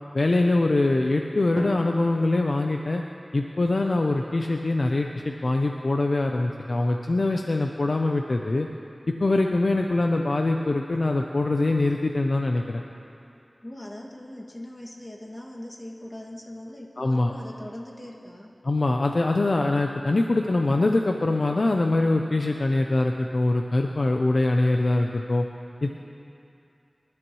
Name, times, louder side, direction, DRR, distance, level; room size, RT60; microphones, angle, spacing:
voice 1, 0.1-3.0 3.3-8.7 9.2-12.8 17.0-17.3 18.6-25.4 25.8-25.9, left 2 dB, 70° left, 2 dB, 0.6 m, -23 dB
Drum, 1.6-3.6, right 2 dB, 75° right, 0.7 m, -44 dB
voice 2, 13.6-18.5, left 1 dB, 35° left, -2 dB, 2.2 m, -40 dB
25.5 x 12.0 x 3.2 m, 2.6 s
wide cardioid pair, 55°, 0 cm